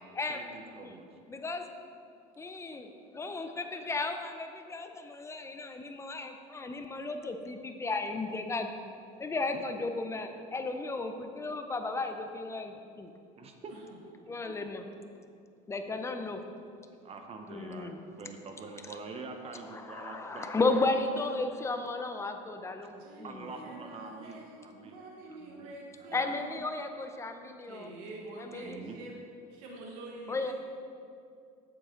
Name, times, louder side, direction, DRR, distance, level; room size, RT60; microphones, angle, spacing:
voice 1, 0.3-1.1 9.5-9.6 13.4-13.9 14.2-14.5 17.0-20.8 23.2-25.0 25.3-25.7 26.0-26.4 28.6-29.0, right 4 dB, 30° right, 5 dB, 0.7 m, -45 dB
voice 2, 1.3-1.6 2.4-8.8 9.2-13.1 14.3-14.9 15.7-16.4 17.5-18.0 19.6-23.5 26.1-27.9 28.4-28.8 30.3-30.5, left 3 dB, 15° left, 6 dB, 0.6 m, -34 dB
voice 3, 13.7-14.0 22.9-26.6 27.7-29.2 29.5-30.5, right 2 dB, 80° right, -1 dB, 1.3 m, -46 dB
7.8 x 7.6 x 3.8 m, 2.4 s
supercardioid pair, 120°, 19 cm